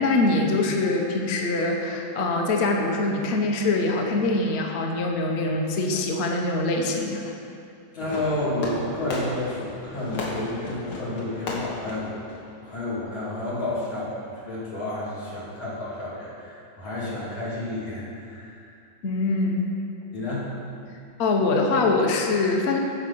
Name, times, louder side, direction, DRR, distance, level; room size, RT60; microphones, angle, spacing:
voice 1, 0.0-7.2 19.0-19.7 21.2-22.8, left 2 dB, 45° left, 1 dB, 0.9 m, -23 dB
voice 2, 7.9-12.3 12.6-18.8 20.1-20.5, left 2 dB, 90° left, -9 dB, 3.6 m, -31 dB
Fireworks, 8.0-13.0, left 1 dB, 65° left, 2.1 m, -35 dB
13.5 x 4.8 x 5.7 m, 2.5 s
omnidirectional pair, 2.2 m